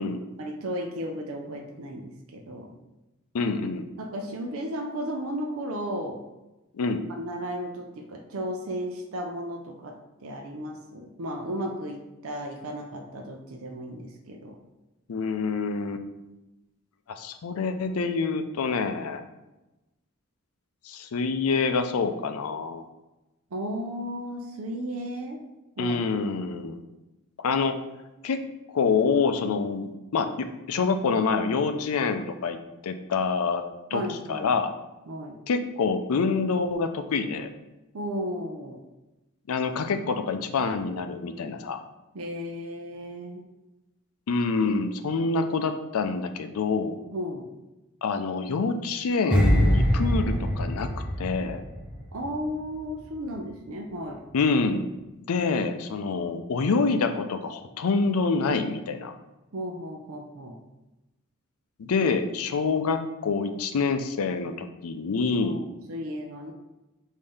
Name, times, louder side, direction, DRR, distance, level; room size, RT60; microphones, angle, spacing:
voice 1, 0.4-2.7 4.0-6.2 7.1-14.6 23.5-25.4 25.8-26.0 33.9-34.5 35.1-35.4 37.9-38.8 42.1-43.4 47.1-47.5 52.1-54.2 59.5-60.6 65.4-65.6 65.9-66.5, equal, 65° right, 2 dB, 0.5 m, -34 dB
voice 2, 3.3-3.9 6.7-7.0 15.1-16.0 17.1-19.2 20.8-22.8 25.8-26.8 27.4-27.8 28.2-28.4 28.7-32.6 32.8-33.6 33.9-34.7 35.5-37.5 39.5-41.8 44.3-47.0 48.0-50.9 51.2-51.6 54.3-54.9 55.3-59.1 61.8-65.6, left 4 dB, 80° left, 8 dB, 0.4 m, -26 dB
sound 1, 49.3-52.5 52.8-53.0, equal, 5° right, 0.5 m, -24 dB
5.4 x 2.7 x 3.4 m, 1.0 s
head